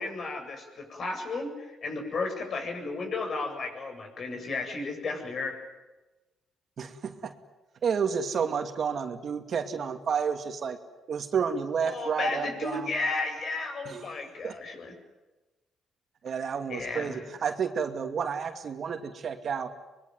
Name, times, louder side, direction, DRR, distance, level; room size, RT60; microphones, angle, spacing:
voice 1, 0.0-5.6 11.8-14.9 16.3-17.2, left 3 dB, 50° left, 5 dB, 7.7 m, -33 dB
voice 2, 6.8-7.3 7.8-10.8 11.1-12.9 13.9-14.0 14.4-14.6 16.2-19.7, right 6 dB, 55° right, 6 dB, 2.5 m, -30 dB
24.5 x 22.0 x 9.5 m, 1.1 s
cardioid pair, 90°, 0 cm